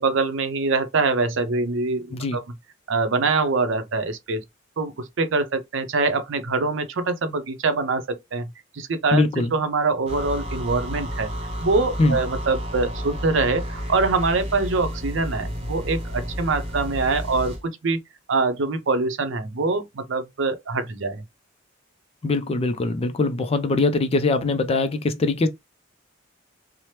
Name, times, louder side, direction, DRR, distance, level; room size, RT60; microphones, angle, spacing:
voice 1, 0.0-2.4 2.9-4.4 4.8-8.5 8.7-9.2 9.5-11.3 11.6-18.0 18.3-21.2, right 3 dB, 70° right, 0.6 m, -24 dB
voice 2, 9.1-9.5 12.0-12.2 22.2-25.5, left 3 dB, 30° left, 0.4 m, -22 dB
sound 1, 10.1-17.6, equal, 30° right, 0.7 m, -31 dB
2.8 x 2.0 x 3.2 m
head